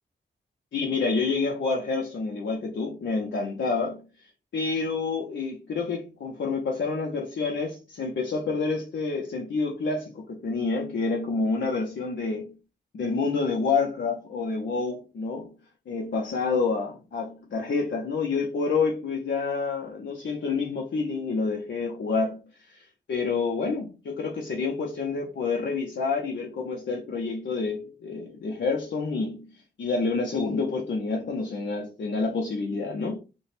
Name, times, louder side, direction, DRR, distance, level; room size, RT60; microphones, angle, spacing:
voice 1, 0.7-4.0 4.5-12.5 12.9-15.5 15.9-33.2, left 4 dB, 85° left, 0.8 m, -28 dB
5.2 x 2.2 x 3.4 m
wide cardioid pair, 120°, 19 cm